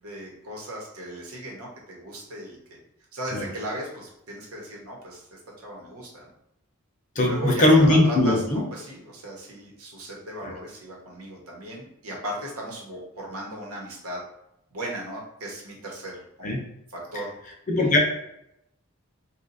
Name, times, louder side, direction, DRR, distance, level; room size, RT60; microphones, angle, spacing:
voice 1, 0.0-2.8 3.1-6.3 7.1-14.2 14.7-16.6 16.9-17.3 17.8-17.9, right 1 dB, 80° right, -2 dB, 1.1 m, -36 dB
voice 2, 7.2-8.6 10.4-10.5 16.4-16.6 17.7-18.0, left 1 dB, 35° left, 2 dB, 0.6 m, -20 dB
2.8 x 2.4 x 3.9 m, 0.83 s
head